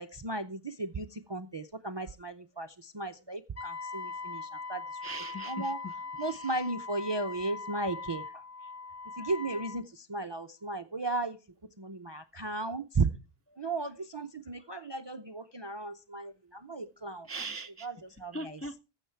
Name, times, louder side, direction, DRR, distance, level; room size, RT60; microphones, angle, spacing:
voice 1, 0.0-4.8 5.4-5.8 6.2-8.4 9.2-11.4 11.8-13.1 13.6-17.3 17.8-18.8, right 3 dB, 35° right, 8 dB, 0.4 m, -35 dB
Wind instrument woodwind instrument, 3.6-9.8, left 4 dB, 55° left, 1.8 m, -41 dB
voice 2, 5.0-5.9 6.2-6.5 17.3-17.9 18.3-18.8, right 1 dB, 20° left, 7 dB, 0.4 m, -40 dB
15.0 x 7.2 x 4.5 m, 0.31 s
omnidirectional pair, 1.2 m